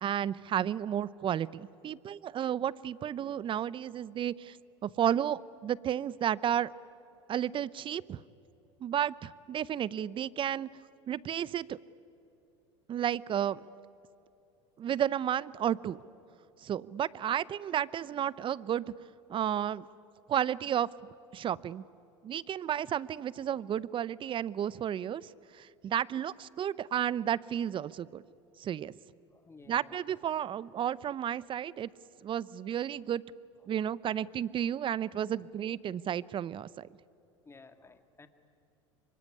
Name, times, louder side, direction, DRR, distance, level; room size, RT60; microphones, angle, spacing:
voice 1, 0.0-4.6 4.8-6.7 7.3-8.2 8.8-10.7 11.1-11.8 12.9-13.7 14.8-16.0 16.6-18.9 19.3-19.8 20.3-20.9 21.3-21.8 22.2-28.2 28.6-28.9 29.7-31.9 32.2-33.2 33.7-36.9, right 10 dB, 35° right, 21 dB, 0.7 m, -32 dB
voice 2, 29.3-30.0 37.4-38.3, left 3 dB, 15° left, 9 dB, 1.8 m, -54 dB
24.5 x 23.5 x 9.8 m, 3.0 s
hypercardioid pair, 85°, 15 cm